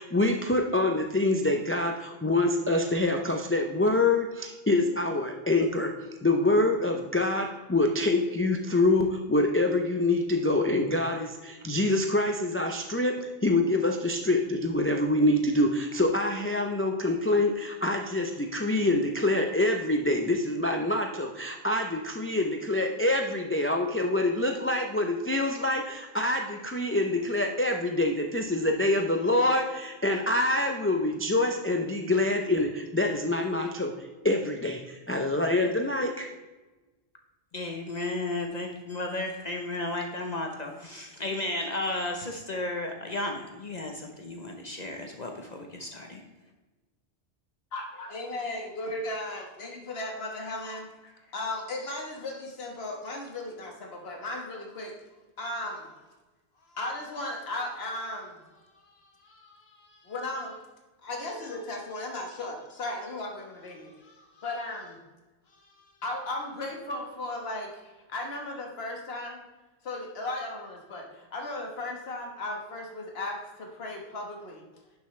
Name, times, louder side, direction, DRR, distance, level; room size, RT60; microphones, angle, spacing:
voice 1, 0.0-5.9 6.2-36.3, left 2 dB, 15° left, 3 dB, 0.5 m, -26 dB
voice 2, 37.5-46.2, left 2 dB, 45° left, 2 dB, 0.9 m, -34 dB
voice 3, 47.7-54.9 55.4-56.0 56.7-60.6 61.0-65.0 65.5-69.4 69.8-74.6, left 2 dB, 70° left, 1 dB, 1.6 m, -36 dB
11.0 x 7.0 x 3.2 m, 1.2 s
omnidirectional pair, 1.1 m